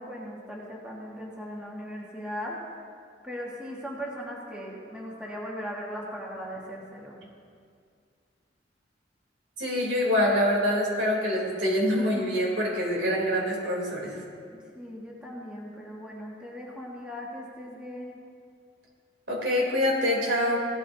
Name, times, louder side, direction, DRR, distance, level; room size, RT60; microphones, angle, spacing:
voice 1, 0.0-2.6 3.2-7.2 14.7-18.2, equal, 5° right, -4 dB, 1.8 m, -38 dB
voice 2, 9.6-14.2 19.3-20.6, left 1 dB, 90° right, -3 dB, 3.5 m, -25 dB
17.0 x 13.0 x 2.8 m, 2.2 s
head